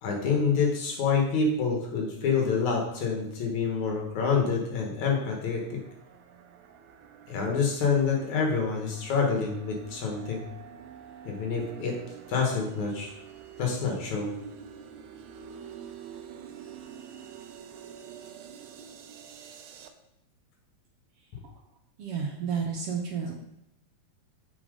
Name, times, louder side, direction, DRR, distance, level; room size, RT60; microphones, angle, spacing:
voice 1, 0.0-5.8 7.3-10.5 11.3-12.0 12.3-13.1 13.6-14.3, left 5 dB, 75° left, 1 dB, 2.8 m, -27 dB
sound 1, 5.0-19.9, right 8 dB, 75° right, 2.0 m, -47 dB
voice 2, 22.0-23.3, right 6 dB, 60° right, 0 dB, 1.9 m, -31 dB
7.5 x 6.0 x 5.1 m, 0.81 s
omnidirectional pair, 3.5 m